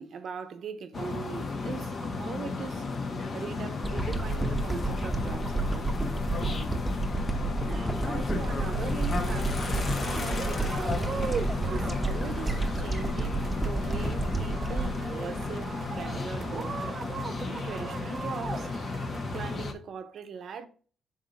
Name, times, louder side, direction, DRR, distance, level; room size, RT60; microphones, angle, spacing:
voice 1, 0.0-6.1 7.6-11.3 11.7-15.7 15.9-16.8 17.1-18.9 19.3-20.7, right 6 dB, 60° right, 0.9 m, -41 dB
sound 1, 0.9-19.7, left 3 dB, 45° left, 1.2 m, -34 dB
sound 2, 3.8-16.2 16.6-16.7, right 2 dB, 5° right, 1.0 m, -31 dB
sound 3, 9.6-19.5, right 5 dB, 45° right, 0.5 m, -39 dB
6.4 x 4.0 x 4.1 m
cardioid pair, 90°, 0 cm